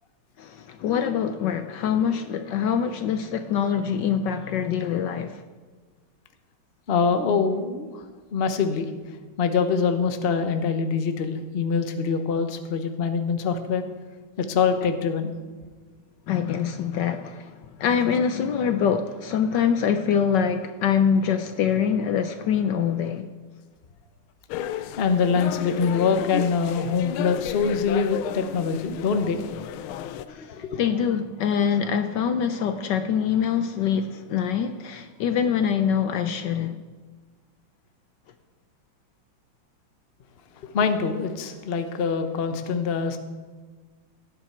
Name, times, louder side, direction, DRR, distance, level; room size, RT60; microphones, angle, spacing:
voice 1, 0.4-5.4 16.3-23.3 30.3-36.8, left 7 dB, 70° left, 1.2 m, -24 dB
voice 2, 6.9-8.0 8.3-8.9 9.4-13.9 14.4-15.4 25.0-29.4 30.3-30.8 40.6-43.2, left 5 dB, 45° left, 0.8 m, -24 dB
sound 1, 24.5-30.3, left 11 dB, 85° left, 1.4 m, -33 dB
17.0 x 9.6 x 4.4 m
omnidirectional pair, 2.3 m